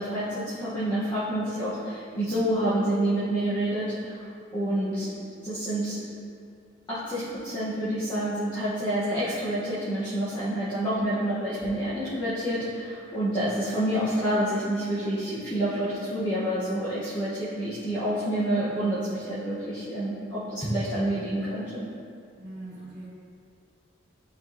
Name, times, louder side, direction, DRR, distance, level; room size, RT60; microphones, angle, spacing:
voice 1, 0.0-4.2 4.5-5.1 5.4-6.0 6.9-21.8, right 1 dB, 20° left, -13 dB, 1.5 m, -28 dB
voice 2, 4.5-4.9 22.4-23.1, right 2 dB, 35° right, -9 dB, 1.3 m, -42 dB
11.0 x 4.9 x 3.0 m, 2.4 s
head